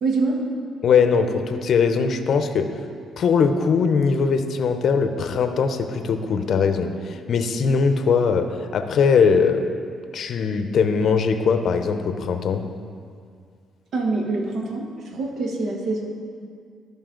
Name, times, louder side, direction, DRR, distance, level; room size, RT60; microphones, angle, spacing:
voice 1, 0.0-0.4 13.9-16.1, right 3 dB, 70° right, 0 dB, 1.2 m, -25 dB
voice 2, 0.8-2.7 3.2-9.7 10.1-12.6, left 5 dB, 60° left, 8 dB, 0.6 m, -20 dB
13.0 x 5.3 x 3.8 m, 2.2 s
cardioid pair, 90°, 0 cm